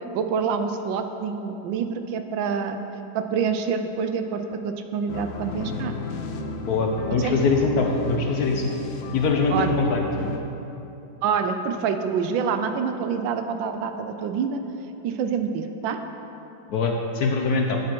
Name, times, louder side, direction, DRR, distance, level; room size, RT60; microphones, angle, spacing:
voice 1, 0.1-2.8 3.1-5.9 7.2-7.3 9.5-9.8 11.2-14.6 15.0-16.0, right 6 dB, 80° right, 7 dB, 1.3 m, -26 dB
sound 1, 5.1-10.4, left 4 dB, 80° left, 1.4 m, -33 dB
voice 2, 6.6-8.6 9.1-10.0 16.7-17.8, left 3 dB, 65° left, 2 dB, 1.0 m, -23 dB
11.5 x 6.8 x 4.6 m, 3.0 s
omnidirectional pair, 2.1 m